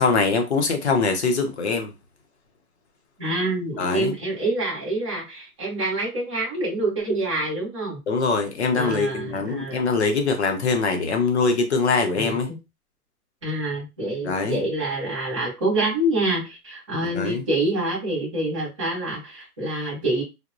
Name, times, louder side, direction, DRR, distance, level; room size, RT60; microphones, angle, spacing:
voice 1, 0.0-1.9 3.8-4.1 8.1-12.5 14.2-14.6 17.1-17.4, left 4 dB, 45° left, 0.5 m, -23 dB
voice 2, 3.2-8.0 8.7-9.8 12.1-12.6 13.4-20.2, right 1 dB, 20° right, 0.6 m, -26 dB
2.9 x 2.1 x 2.4 m
hypercardioid pair, 175°, 46 cm